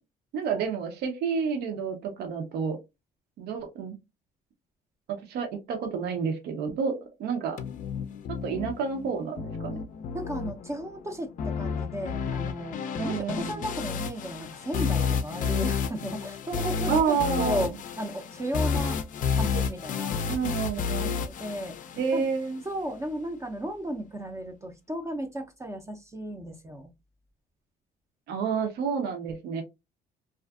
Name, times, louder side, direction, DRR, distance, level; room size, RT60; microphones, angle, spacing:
voice 1, 0.3-2.8 3.4-4.0 5.1-7.6 8.3-9.8 13.0-13.6 16.9-17.7 20.3-21.2 22.0-22.6 28.3-29.6, right 6 dB, 75° right, 0.7 m, -29 dB
sound 1, 7.6-22.6, left 6 dB, 50° left, 0.4 m, -31 dB
voice 2, 10.1-19.0 19.4-20.2 21.0-21.8 22.1-22.2 22.6-26.9, equal, 15° right, 0.5 m, -35 dB
2.5 x 2.4 x 2.3 m
cardioid pair, 110°, 17 cm